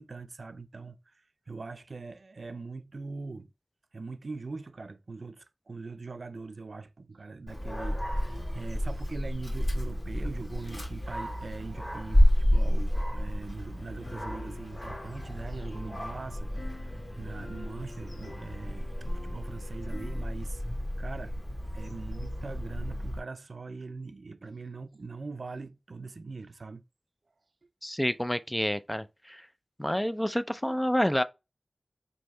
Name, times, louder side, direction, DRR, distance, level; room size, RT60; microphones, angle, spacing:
voice 1, 0.0-3.5 3.9-20.6 21.0-21.4 21.7-26.8, right 3 dB, 75° right, 0.3 m, -42 dB
Dog, 7.5-23.2, equal, 50° left, 1.5 m, -31 dB
sound 1, 13.8-20.2, left 1 dB, 70° left, 1.4 m, -46 dB
voice 2, 27.8-29.4 29.8-31.2, equal, 10° left, 0.3 m, -28 dB
3.1 x 2.7 x 4.5 m
cardioid pair, 40°, 0 cm